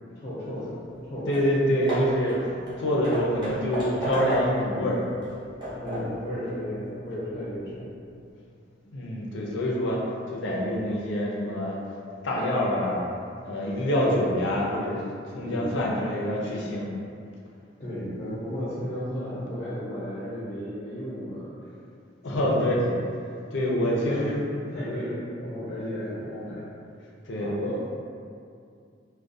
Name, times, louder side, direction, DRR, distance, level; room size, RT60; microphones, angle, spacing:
voice 1, 0.2-1.3 5.8-7.9 14.0-14.1 15.4-15.6 17.8-21.6 22.3-23.0 23.8-24.4 24.7-26.6 27.3-27.5, equal, 35° left, -11 dB, 0.6 m, -34 dB
Hammer / Wood, 1.0-1.1 1.3-1.5 1.9-4.7 5.2-6.2, equal, 25° right, 0.6 m, -32 dB
voice 2, 1.3-5.0 8.9-10.0 10.3-11.8 12.2-13.0 13.4-15.0 15.3-16.9 22.2-22.8 23.5-24.5 27.2-27.9, equal, 80° left, -3 dB, 0.5 m, -26 dB
2.3 x 2.1 x 2.5 m, 2.4 s
head